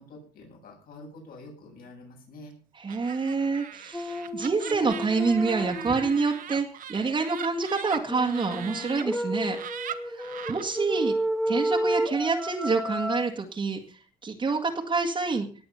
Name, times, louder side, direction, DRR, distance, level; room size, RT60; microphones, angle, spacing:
voice 1, 0.0-2.5, left 2 dB, 60° left, 0 dB, 8.0 m, -47 dB
voice 2, 2.8-9.6 10.0-11.2 11.5-15.5, right 4 dB, 30° right, 2 dB, 1.9 m, -27 dB
Laughter, 2.9-9.0 9.4-10.6, right 9 dB, 55° right, 1.6 m, -40 dB
sound 1, 3.9-6.3 8.1-13.3, right 1 dB, 5° left, 1.6 m, -31 dB
19.0 x 8.4 x 5.7 m, 0.40 s
cardioid pair, 110°, 17 cm